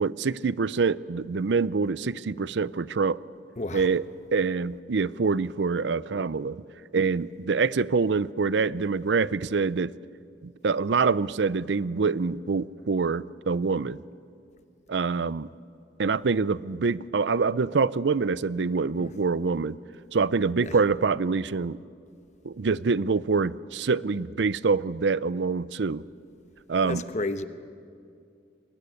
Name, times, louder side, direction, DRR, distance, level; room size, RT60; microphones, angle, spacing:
voice 1, 0.0-3.2 3.7-4.0 4.3-6.6 6.9-9.9 10.4-14.0 14.9-15.5 16.0-19.8 20.1-21.8 22.4-26.0 26.7-27.0, right 4 dB, 75° right, 18 dB, 0.5 m, -25 dB
voice 2, 3.6-3.9 19.0-19.1 20.6-20.7 26.8-27.5, left 2 dB, 40° left, 10 dB, 1.1 m, -32 dB
23.0 x 19.5 x 9.9 m, 2.3 s
head